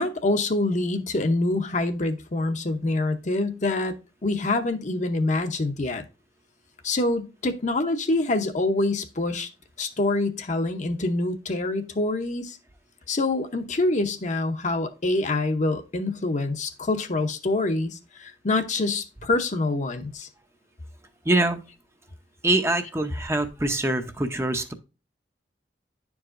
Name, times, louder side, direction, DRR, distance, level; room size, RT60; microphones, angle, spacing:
voice 1, 0.0-4.0 4.2-6.0 6.8-9.5 9.8-12.6 13.1-20.3, left 2 dB, 40° left, 0.7 m, -26 dB
voice 2, 21.2-21.6 22.4-24.7, right 2 dB, 15° right, 0.6 m, -24 dB
10.5 x 4.7 x 2.5 m
head